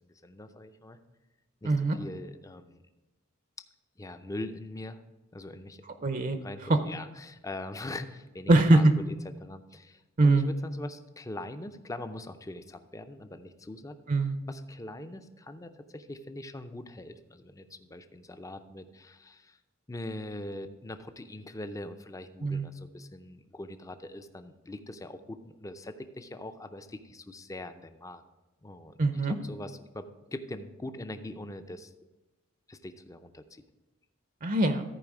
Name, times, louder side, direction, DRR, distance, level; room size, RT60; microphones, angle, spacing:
voice 1, 0.2-1.0 1.6-2.8 4.0-5.0 5.3-5.8 6.4-9.1 9.4-14.0 14.5-19.6 19.9-28.2 28.6-29.0 29.3-31.9 32.7-33.6, left 1 dB, 15° left, 9 dB, 0.5 m, -42 dB
voice 2, 1.6-2.0 6.0-6.4 6.7-6.8 8.5-8.9 10.2-10.5 14.1-14.4 22.4-22.7 29.0-29.4 34.4-34.8, right 2 dB, 40° right, 8 dB, 0.6 m, -22 dB
14.0 x 4.7 x 4.8 m, 1.1 s
head